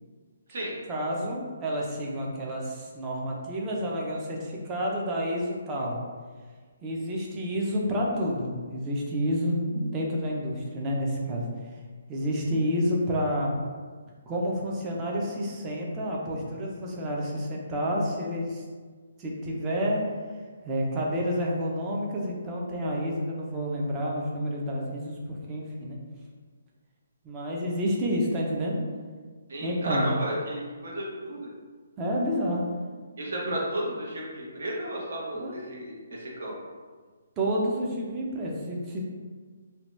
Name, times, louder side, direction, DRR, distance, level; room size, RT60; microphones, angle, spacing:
voice 1, 0.9-6.0 6.8-11.5 12.1-13.5 14.3-18.6 19.2-20.0 20.6-26.0 27.2-28.8 29.6-30.1 32.0-32.6 33.5-33.6 35.3-35.6 37.4-39.0, equal, 15° right, -3 dB, 0.4 m, -29 dB
voice 2, 29.5-31.5 33.2-36.5, right 1 dB, 60° right, -3 dB, 0.8 m, -33 dB
2.7 x 2.2 x 3.1 m, 1.5 s
hypercardioid pair, 165°, 0 cm